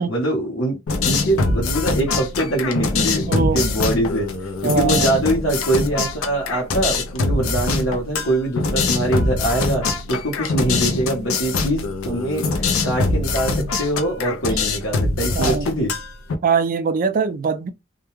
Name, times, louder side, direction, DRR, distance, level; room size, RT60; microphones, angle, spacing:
voice 1, 0.0-15.9, right 1 dB, 65° left, 0.8 m, -23 dB
sound 1, 0.9-16.3, left 3 dB, 85° left, 0.5 m, -23 dB
voice 2, 3.3-3.6 4.6-5.1 11.6-11.8 15.3-15.7 16.4-17.7, right 5 dB, 40° right, 0.3 m, -22 dB
2.2 x 2.1 x 3.0 m
head